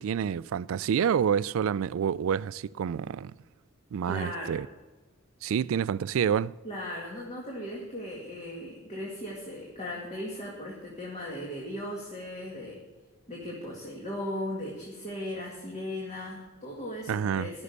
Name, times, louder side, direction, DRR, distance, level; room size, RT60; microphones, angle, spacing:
voice 1, 0.0-3.3 3.9-4.7 5.4-6.5 17.1-17.5, right 8 dB, 70° right, 0.3 m, -28 dB
voice 2, 4.1-4.6 6.6-12.8 13.3-17.6, left 1 dB, 35° left, 2.1 m, -37 dB
13.5 x 6.3 x 8.1 m
head